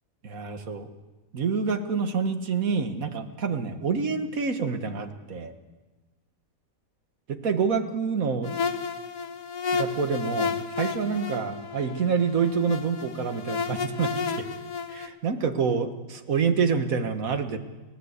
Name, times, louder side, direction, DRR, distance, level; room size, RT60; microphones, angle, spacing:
voice 1, 0.2-0.9 1.3-5.5 7.3-8.5 9.7-14.5 14.9-17.6, right 5 dB, 75° right, 8 dB, 1.9 m, -27 dB
sound 1, 8.4-15.1, left 5 dB, 70° left, 1.6 m, -32 dB
30.0 x 13.0 x 8.2 m, 1.2 s
omnidirectional pair, 1.5 m